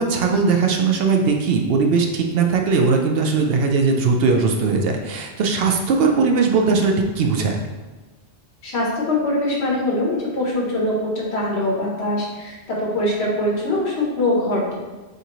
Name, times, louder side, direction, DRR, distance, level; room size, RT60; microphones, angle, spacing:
voice 1, 0.0-7.6, right 4 dB, 65° right, 2 dB, 0.8 m, -19 dB
voice 2, 8.6-14.8, left 1 dB, 75° left, -3 dB, 1.4 m, -23 dB
6.6 x 2.6 x 3.0 m, 1.3 s
omnidirectional pair, 1.1 m